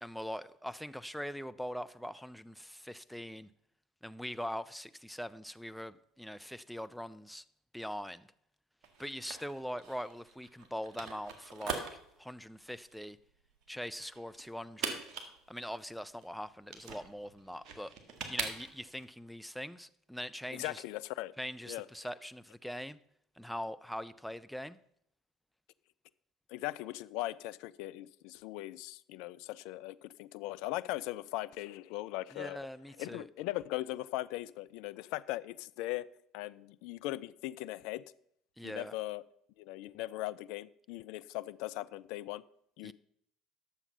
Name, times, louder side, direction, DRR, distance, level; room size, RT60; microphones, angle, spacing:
voice 1, 0.0-3.5 4.0-7.4 7.7-8.3 9.0-11.8 12.2-13.2 13.7-15.0 15.5-17.9 18.3-20.8 21.4-23.0 23.4-24.8 32.3-33.3 38.6-38.9 42.8-42.9, equal, ahead, 12 dB, 0.5 m, -42 dB
sound 1, 8.8-19.0, right 5 dB, 50° right, 1.9 m, -43 dB
voice 2, 20.5-21.3 21.7-21.9 26.5-32.7 33.0-36.1 36.3-38.0 38.6-39.2 39.6-42.4 42.8-42.9, left 17 dB, 65° left, 15 dB, 0.3 m, -39 dB
10.0 x 7.1 x 5.4 m, 0.72 s
figure-of-eight pair, 65°, 0 cm